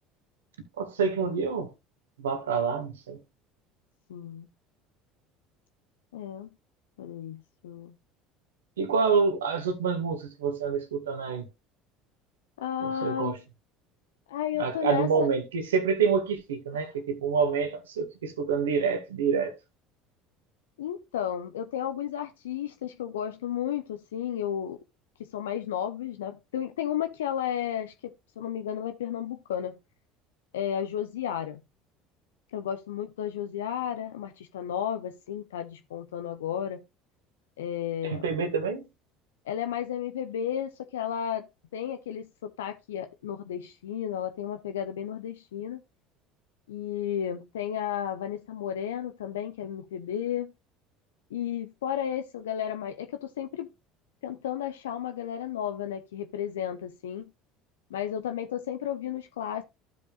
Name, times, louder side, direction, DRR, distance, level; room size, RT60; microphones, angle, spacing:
voice 1, 0.8-1.7 2.2-3.2 8.8-11.4 12.8-13.3 14.6-19.5 38.0-38.9, right 5 dB, 80° right, 1.6 m, -27 dB
voice 2, 4.1-4.5 6.1-6.5 7.0-7.9 12.6-13.4 14.3-15.3 16.7-16.8 20.8-24.8 25.2-29.7 30.5-31.6 32.5-36.8 37.6-38.2 39.4-41.5 41.7-45.8 46.7-50.5 51.3-53.7 54.2-57.2 57.9-59.6, left 10 dB, 75° left, 0.6 m, -33 dB
14.5 x 5.3 x 2.4 m
figure-of-eight pair, 65°, 0 cm